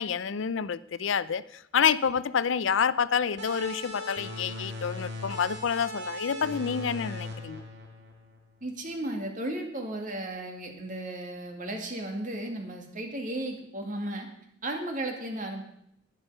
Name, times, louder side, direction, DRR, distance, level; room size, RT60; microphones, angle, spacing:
voice 1, 0.0-7.6, left 7 dB, 75° left, 17 dB, 0.5 m, -28 dB
sound 1, 3.4-8.6, left 1 dB, 65° right, 2.3 m, -39 dB
voice 2, 8.6-14.3 14.6-15.6, right 1 dB, 45° right, 3 dB, 2.2 m, -35 dB
11.5 x 11.0 x 5.6 m, 0.75 s
head